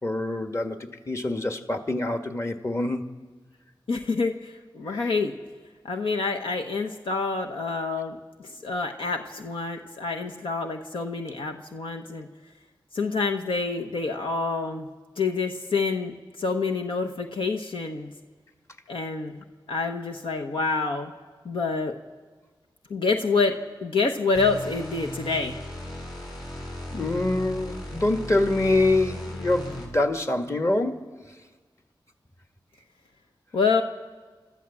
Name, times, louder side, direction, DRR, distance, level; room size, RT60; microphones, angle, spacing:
voice 1, 0.0-3.0 4.9-5.0 26.9-31.1, left 2 dB, 35° left, 6 dB, 1.8 m, -25 dB
voice 2, 3.9-5.3 5.8-12.3 12.9-14.9 15.2-16.1 16.4-18.1 18.9-21.1 21.4-21.9 22.9-25.6 33.5-33.8, left 4 dB, 85° left, 4 dB, 1.0 m, -27 dB
sound 1, 24.3-30.1, left 1 dB, 55° left, 6.9 m, -37 dB
28.0 x 13.0 x 7.3 m, 1.4 s
cardioid pair, 40°, 9 cm